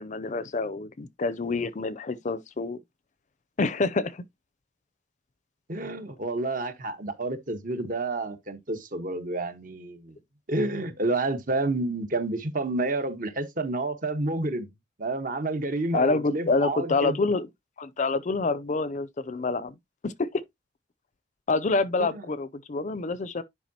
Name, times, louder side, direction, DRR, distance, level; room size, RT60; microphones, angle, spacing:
voice 1, 0.0-2.8 3.6-4.2 15.9-17.5 17.8-19.7 20.0-20.4 21.5-23.4, left 3 dB, 40° left, 0.5 m, -27 dB
voice 2, 5.7-10.2 10.5-14.7 15.0-17.2 22.0-22.2, right 2 dB, 50° right, 1.2 m, -29 dB
10.5 x 4.7 x 2.8 m
head